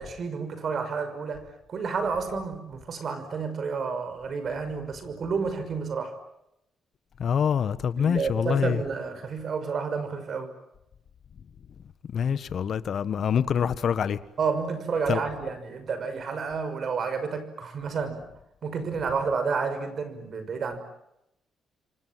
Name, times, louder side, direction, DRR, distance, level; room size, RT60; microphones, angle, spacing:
voice 1, 0.0-6.2 8.0-10.5 14.4-18.3 18.6-20.8, right 5 dB, 50° right, 5.9 m, -30 dB
voice 2, 7.2-8.8 12.1-14.2 15.1-15.2, left 7 dB, 60° left, 1.5 m, -25 dB
29.0 x 25.5 x 7.6 m
cardioid pair, 90°, 0 cm